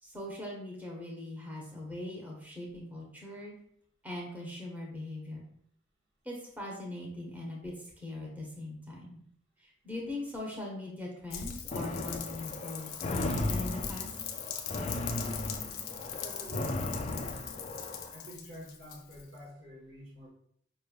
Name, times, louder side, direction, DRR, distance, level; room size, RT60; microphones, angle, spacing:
voice 1, 0.0-3.5 4.0-5.5 6.2-9.2 9.6-14.1, left 1 dB, 10° right, -2 dB, 1.0 m, -41 dB
Rain, 11.3-19.4, left 9 dB, 90° left, 0.5 m, -41 dB
sound 1, 11.7-18.2, left 2 dB, 35° left, 0.4 m, -36 dB
voice 2, 16.2-17.7 18.1-20.3, equal, 55° right, -5 dB, 1.3 m, -49 dB
5.2 x 3.2 x 2.3 m, 0.67 s
head